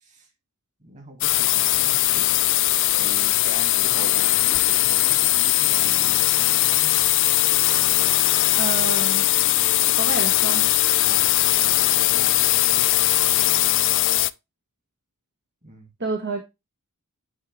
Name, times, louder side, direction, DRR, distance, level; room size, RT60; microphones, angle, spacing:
voice 1, 0.8-2.6 2.9-7.0 11.0-12.3 12.7-12.9 15.6-15.9, right 1 dB, 35° right, 2.5 m, -42 dB
sound 1, 1.2-14.3, left 16 dB, 55° left, 0.4 m, -20 dB
voice 2, 8.4-9.2 9.9-10.7 16.0-16.4, right 3 dB, 50° right, 1.2 m, -29 dB
9.7 x 3.5 x 3.4 m
head